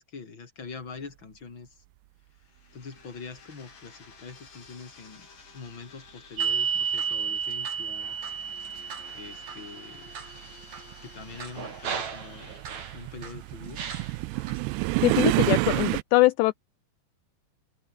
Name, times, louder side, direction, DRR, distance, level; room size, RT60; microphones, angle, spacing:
voice 1, 0.0-1.8 2.7-5.3 5.5-8.2 9.1-10.1 11.0-12.6 12.9-13.8, left 4 dB, 25° left, 3.7 m, -44 dB
sound 1, 2.3-12.6, left 5 dB, 45° left, 6.5 m, -53 dB
sound 2, 6.4-13.3 13.8-14.6 15.1-15.9, right 6 dB, 40° right, 3.8 m, -33 dB
sound 3, 8.8-8.9 9.9-16.0, right 23 dB, 85° right, 2.4 m, -28 dB
voice 2, 15.0-16.5, left 21 dB, 85° left, 2.4 m, -22 dB
open air
omnidirectional pair, 5.5 m